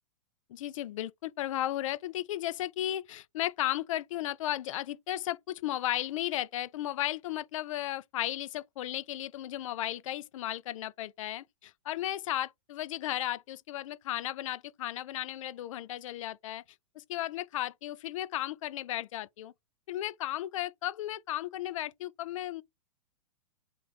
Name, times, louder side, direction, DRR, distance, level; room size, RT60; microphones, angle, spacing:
voice 1, 0.5-16.6 17.0-19.5 19.9-22.6, left 13 dB, 60° left, 0.4 m, -35 dB
2.8 x 2.6 x 3.4 m
hypercardioid pair, 110°, 19 cm